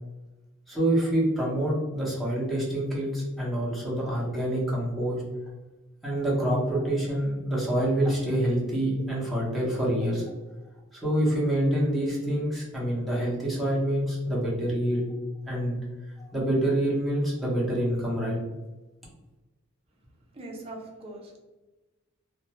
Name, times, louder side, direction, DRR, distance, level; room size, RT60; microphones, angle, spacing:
voice 1, 0.7-5.2 6.0-10.2 10.9-15.1 15.5-15.8 16.3-18.4, right 1 dB, ahead, -6 dB, 0.8 m, -26 dB
voice 2, 20.3-21.4, right 2 dB, 30° right, 0 dB, 0.6 m, -41 dB
2.5 x 2.2 x 2.9 m, 1.1 s
head